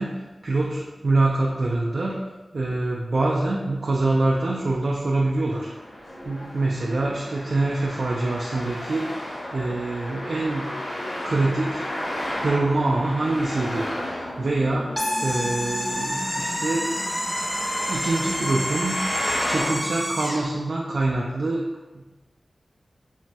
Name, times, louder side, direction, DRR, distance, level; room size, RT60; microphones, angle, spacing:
voice 1, 0.0-2.2 2.5-5.7 6.2-10.6 11.2-11.9 12.4-14.9 15.2-16.9 17.9-19.0 19.5-21.6 21.9-22.0, right 2 dB, 65° right, -3 dB, 0.3 m, -25 dB
Traffic noise roadway noise, 5.4-19.8, equal, 55° left, 0.9 m, -34 dB
sound 1, 7.5-19.3, left 2 dB, 75° left, 0.3 m, -41 dB
sound 2, 15.0-20.5, equal, 5° left, 0.4 m, -28 dB
3.1 x 2.2 x 2.7 m, 1.1 s
wide cardioid pair, 100°, 0 cm